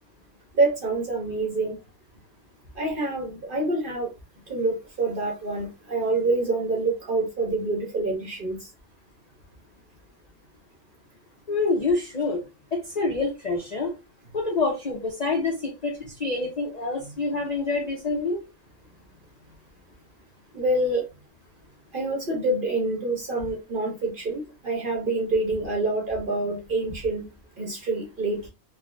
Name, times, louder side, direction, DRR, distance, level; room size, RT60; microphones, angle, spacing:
voice 1, 0.5-1.8 2.7-4.1 4.5-8.7 17.0-17.1 20.5-21.0 21.9-27.2 27.6-28.5, right 2 dB, 50° right, 0 dB, 0.7 m, -26 dB
voice 2, 11.5-12.4 12.7-13.9 14.3-15.9 16.2-18.4, left 3 dB, 55° left, 0 dB, 0.4 m, -26 dB
3.1 x 2.1 x 2.5 m, 0.27 s
omnidirectional pair, 1.5 m